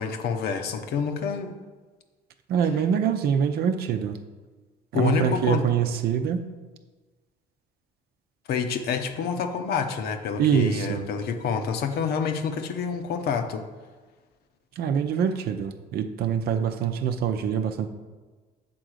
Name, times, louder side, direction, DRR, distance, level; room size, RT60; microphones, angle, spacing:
voice 1, 0.0-1.5 4.9-5.6 8.5-13.6, left 6 dB, 70° left, 6 dB, 0.8 m, -27 dB
voice 2, 2.5-4.2 4.9-6.4 10.4-11.1 14.8-17.9, right 8 dB, 65° right, 8 dB, 0.7 m, -24 dB
7.7 x 3.8 x 6.4 m, 1.3 s
cardioid pair, 110°, 17 cm